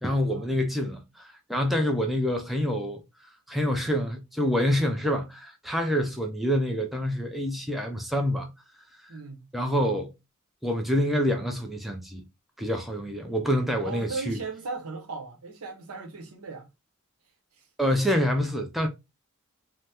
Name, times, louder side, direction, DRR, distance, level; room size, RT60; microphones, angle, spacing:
voice 1, 0.0-3.0 3.5-8.5 9.5-10.1 10.6-12.2 12.6-14.4 17.8-18.9, equal, ahead, 0.4 m, -27 dB
voice 2, 9.1-9.5 13.8-16.7 17.6-17.7, right 4 dB, 75° right, 0.8 m, -37 dB
2.8 x 2.0 x 3.3 m
head